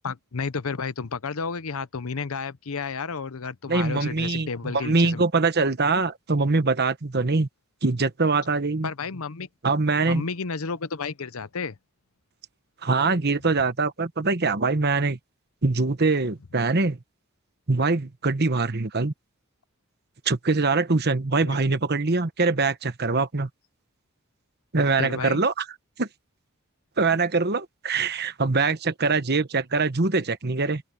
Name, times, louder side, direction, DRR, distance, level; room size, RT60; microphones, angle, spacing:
voice 1, 0.0-5.2 8.8-9.5 10.0-11.8 21.4-21.6 25.0-25.4, left 5 dB, 70° left, 0.8 m, -31 dB
voice 2, 3.7-7.5 7.8-8.9 9.6-10.2 12.8-15.2 15.6-17.0 17.7-19.1 20.2-23.5 24.7-25.6 26.0-26.1 27.0-30.8, right 3 dB, 45° right, 1.2 m, -23 dB
open air
head